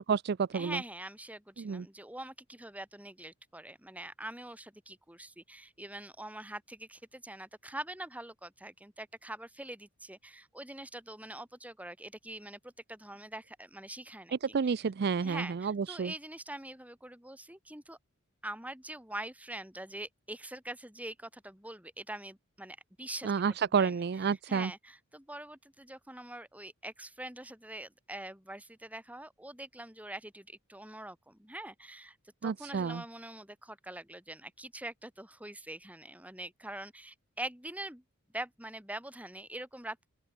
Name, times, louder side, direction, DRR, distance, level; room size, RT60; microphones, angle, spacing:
voice 1, 0.0-0.8 1.6-1.9 14.4-16.1 23.2-24.7 32.4-33.0, right 6 dB, 50° right, 0.4 m, -30 dB
voice 2, 0.5-14.4 14.6-14.7 15.2-18.0 18.4-23.4 23.8-24.0 24.5-32.2 32.4-38.0 38.3-40.1, right 1 dB, 5° right, 5.3 m, -44 dB
open air
head